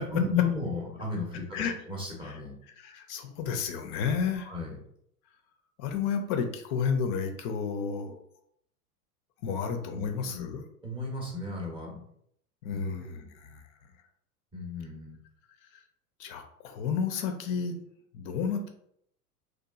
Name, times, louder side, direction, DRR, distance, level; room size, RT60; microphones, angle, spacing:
voice 1, 0.1-2.5 4.4-4.8 9.4-9.5 9.9-10.5 10.8-12.0 12.7-13.3 14.5-15.2, left 4 dB, 10° right, -1 dB, 0.6 m, -34 dB
voice 2, 2.8-4.5 5.8-8.2 9.4-10.6 12.6-13.6 16.2-17.8 18.1-18.7, left 6 dB, 40° left, 5 dB, 0.4 m, -31 dB
2.8 x 2.3 x 2.3 m, 0.70 s
hypercardioid pair, 95°, 46 cm